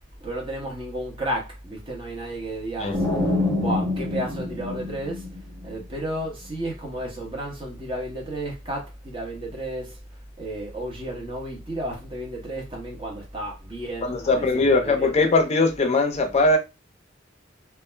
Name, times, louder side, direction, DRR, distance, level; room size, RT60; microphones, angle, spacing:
voice 1, 0.2-3.0 3.6-5.3 5.6-10.0 10.4-15.1, right 1 dB, 25° right, 0.8 m, -32 dB
sound 1, 2.9-5.7, left 2 dB, 65° right, 1.0 m, -26 dB
voice 2, 14.0-16.6, left 2 dB, 35° left, 0.5 m, -20 dB
2.4 x 2.0 x 3.2 m
head